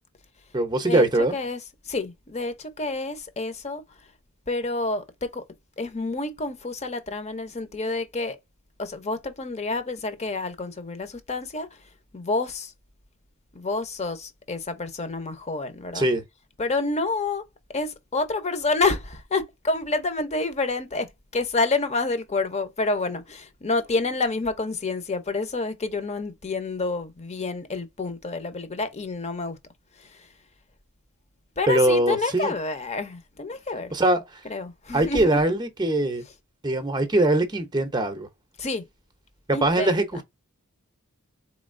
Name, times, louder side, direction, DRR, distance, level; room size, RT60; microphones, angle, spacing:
voice 1, 0.5-1.3 15.9-16.2 31.7-32.5 33.9-34.4 34.9-36.2 36.6-38.3 39.6-40.2, right 1 dB, 20° right, 0.7 m, -22 dB
voice 2, 1.8-3.8 4.5-5.4 5.8-8.4 8.8-11.8 12.1-12.7 13.5-16.1 16.6-17.4 17.7-29.6 30.0-30.3 31.6-34.0 34.5-35.2 38.6-38.8 39.5-40.2, left 3 dB, 30° left, 0.8 m, -28 dB
4.1 x 3.1 x 2.5 m
head